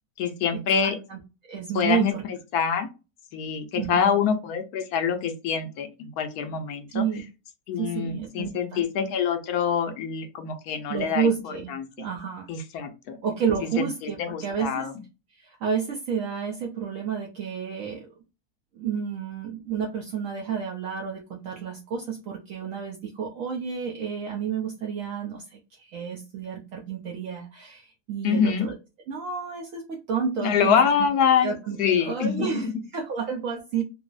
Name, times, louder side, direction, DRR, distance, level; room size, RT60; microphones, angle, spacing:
voice 1, 0.2-1.0 1.7-2.9 3.3-7.1 7.7-11.3 11.7-12.1 12.5-13.2 13.8-14.9 28.2-28.7 30.4-31.5 31.8-32.7, left 7 dB, 90° left, 6 dB, 1.2 m, -25 dB
voice 2, 1.1-2.2 3.8-4.2 6.9-7.2 7.8-8.8 10.9-12.5 13.2-14.9 15.3-18.1 18.7-28.7 29.1-30.8 31.4-33.8, right 7 dB, 65° right, 0 dB, 0.9 m, -30 dB
3.8 x 2.0 x 2.4 m, 0.29 s
omnidirectional pair, 1.6 m